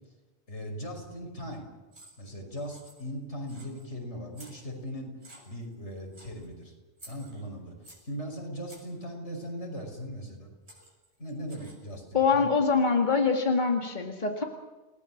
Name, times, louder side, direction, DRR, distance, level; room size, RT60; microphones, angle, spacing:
voice 1, 0.5-1.7 2.2-5.1 5.5-6.7 7.1-7.7 8.0-10.5 11.2-12.5, equal, 85° left, 2 dB, 6.0 m, -39 dB
sound 1, 1.9-2.3 2.6-3.2 3.5-3.9 4.3-4.9 5.2-5.7 6.1-6.5 7.0-8.1 8.7-9.0 10.2-10.3 10.7-11.9, right 1 dB, 75° right, 7.6 m, -53 dB
voice 2, 12.1-14.4, left 5 dB, 40° left, 2 dB, 2.2 m, -24 dB
29.5 x 19.5 x 7.3 m, 1.2 s
omnidirectional pair, 1.1 m